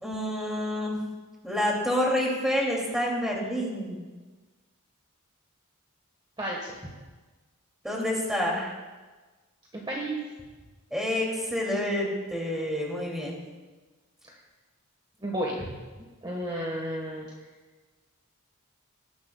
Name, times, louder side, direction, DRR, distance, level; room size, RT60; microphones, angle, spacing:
voice 1, 0.0-1.0 1.4-4.0 7.8-8.7 10.9-13.4, left 1 dB, ahead, -3 dB, 2.4 m, -28 dB
voice 2, 6.4-6.7 9.9-10.2 15.2-15.7 16.2-17.3, right 1 dB, 20° right, -2 dB, 1.3 m, -32 dB
19.0 x 10.5 x 2.3 m, 1.3 s
head